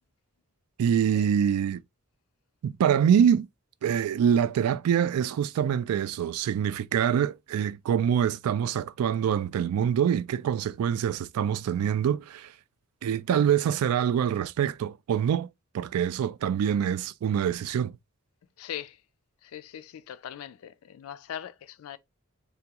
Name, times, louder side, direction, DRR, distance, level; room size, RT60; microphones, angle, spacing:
voice 1, 0.8-1.8 2.6-3.5 3.8-12.5 13.0-15.5 15.7-18.0, right 8 dB, 85° right, 0.3 m, -25 dB
voice 2, 18.6-19.0 19.4-22.0, left 10 dB, 75° left, 0.3 m, -40 dB
3.5 x 2.3 x 2.8 m
head